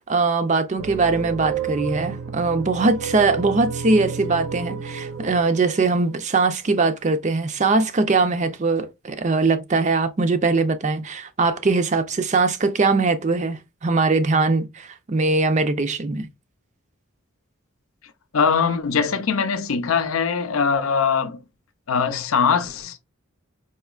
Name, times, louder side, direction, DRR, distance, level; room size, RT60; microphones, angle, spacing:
voice 1, 0.1-16.3, right 3 dB, 35° right, 0.5 m, -21 dB
sound 1, 0.8-6.9, right 7 dB, 85° right, 0.6 m, -32 dB
voice 2, 18.3-21.4 21.9-23.0, left 6 dB, 90° left, 0.6 m, -21 dB
4.3 x 3.0 x 2.3 m
head